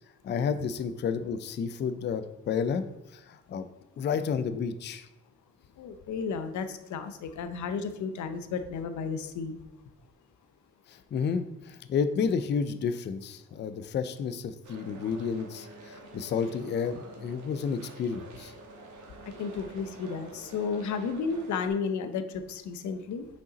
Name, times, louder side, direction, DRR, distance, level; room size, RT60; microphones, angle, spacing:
voice 1, 0.2-2.8 3.1-3.6 4.0-5.0 10.9-18.5, left 6 dB, 40° left, 11 dB, 0.4 m, -31 dB
voice 2, 5.8-9.6 19.4-23.3, left 5 dB, 75° left, 10 dB, 0.7 m, -33 dB
sound 1, 14.6-21.7, right 3 dB, 80° right, 1.3 m, -48 dB
5.7 x 5.2 x 3.9 m, 0.96 s
cardioid pair, 155°, 29 cm